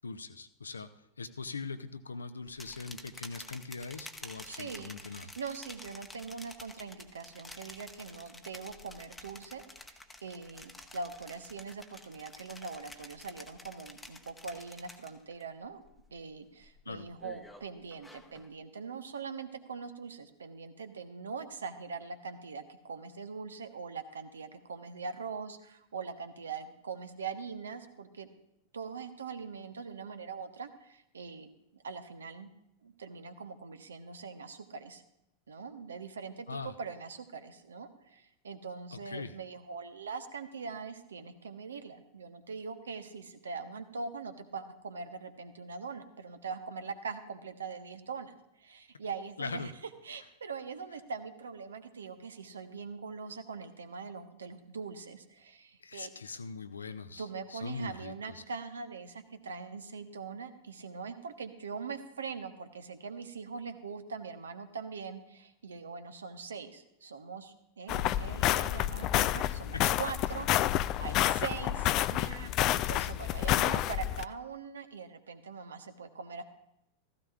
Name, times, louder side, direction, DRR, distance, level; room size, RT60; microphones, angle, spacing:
voice 1, 0.0-0.9 1.2-5.3 16.9-17.1 36.5-36.8 38.9-39.3 49.4-49.7 55.8-58.4 69.7-69.8, left 4 dB, 75° left, 11 dB, 0.7 m, -41 dB
sound 1, 2.5-15.4 15.8-16.2 16.6-18.5, left 2 dB, 5° left, 1.0 m, -50 dB
voice 2, 4.4-15.8 16.1-28.3 28.7-32.5 32.8-35.0 35.5-49.7 50.0-56.1 57.2-76.4, right 5 dB, 70° right, 9 dB, 1.0 m, -42 dB
sound 2, 67.9-74.2, left 14 dB, 40° left, 0.3 m, -29 dB
15.5 x 15.0 x 2.4 m, 0.83 s
figure-of-eight pair, 90°, 0 cm